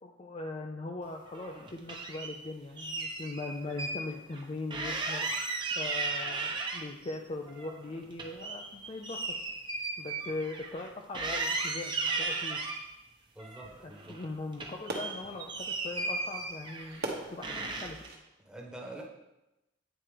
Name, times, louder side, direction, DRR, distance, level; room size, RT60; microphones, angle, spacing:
voice 1, 0.0-5.3 5.7-9.3 10.0-12.6 13.8-18.0, left 2 dB, 30° left, 3 dB, 0.5 m, -40 dB
sound 1, 1.3-2.3 2.8-4.0 4.3-4.4 4.7-7.1 7.5-10.9 11.1-12.8 13.4-14.3 14.5-17.1 17.4-18.1, right 3 dB, 25° right, 0.9 m, -35 dB
sound 2, 2.3-18.2, right 2 dB, 55° right, 1.2 m, -49 dB
voice 2, 13.3-14.2 18.4-19.0, right 1 dB, 5° right, -2 dB, 1.2 m, -45 dB
9.0 x 4.4 x 4.9 m, 0.95 s
head